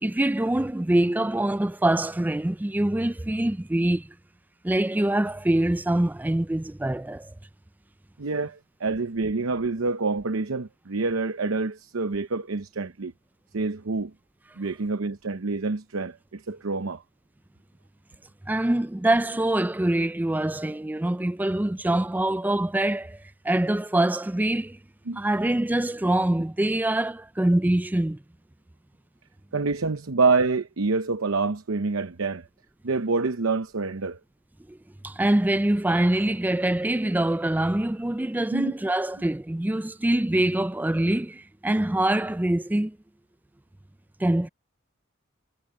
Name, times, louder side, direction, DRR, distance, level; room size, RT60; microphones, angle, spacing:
voice 1, 0.0-4.1 4.6-7.3 18.5-23.2 23.4-24.8 25.2-28.2 34.7-34.8 35.0-43.0 44.2-44.5, right 1 dB, 10° right, 0.3 m, -24 dB
voice 2, 8.2-13.1 13.5-14.1 14.6-17.0 25.1-25.2 29.5-32.5 32.8-34.2 38.5-38.7, right 3 dB, 85° right, 0.8 m, -27 dB
head